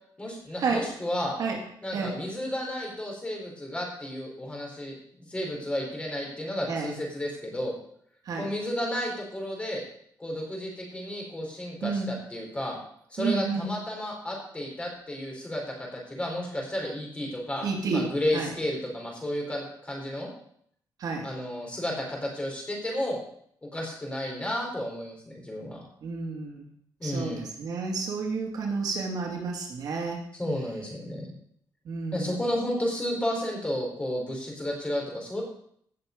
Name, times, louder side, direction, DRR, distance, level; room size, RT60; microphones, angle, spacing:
voice 1, 0.2-1.4 1.8-5.0 5.3-7.7 8.4-9.8 10.2-12.8 13.1-20.3 21.2-23.2 23.7-25.9 27.0-27.5 30.4-31.3 32.1-35.4, left 1 dB, 15° left, -1 dB, 4.5 m, -32 dB
voice 2, 11.8-12.1 13.2-13.7 17.6-18.5 21.0-21.3 26.0-26.7 27.0-30.2 31.8-32.4, right 4 dB, 60° right, 0 dB, 2.5 m, -30 dB
17.0 x 6.7 x 5.3 m, 0.66 s
cardioid pair, 135°, 7 cm